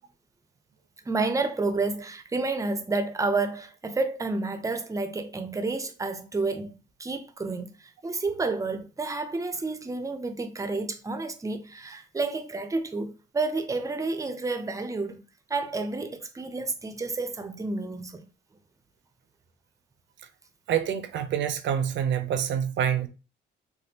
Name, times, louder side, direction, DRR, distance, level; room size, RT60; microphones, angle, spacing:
voice 1, 1.1-15.2 15.5-18.3, right 3 dB, 15° right, 0.5 m, -30 dB
voice 2, 20.7-23.1, right 9 dB, 65° right, 0.5 m, -26 dB
3.4 x 2.2 x 2.8 m
cardioid pair, 90°, 20 cm